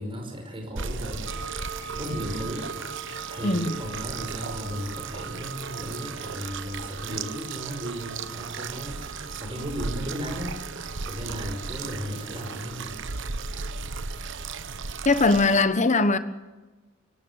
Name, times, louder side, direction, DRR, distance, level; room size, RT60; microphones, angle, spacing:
voice 1, 0.0-1.6 1.9-10.5 10.8-13.0, equal, 25° right, 5.3 m, -36 dB
sound 1, 0.8-15.6, right 4 dB, 65° right, 1.1 m, -36 dB
sound 2, 1.3-15.5, right 4 dB, 80° right, 5.2 m, -44 dB
voice 2, 3.4-3.8 15.0-16.2, left 3 dB, 35° left, 1.3 m, -20 dB
25.5 x 17.5 x 8.3 m
head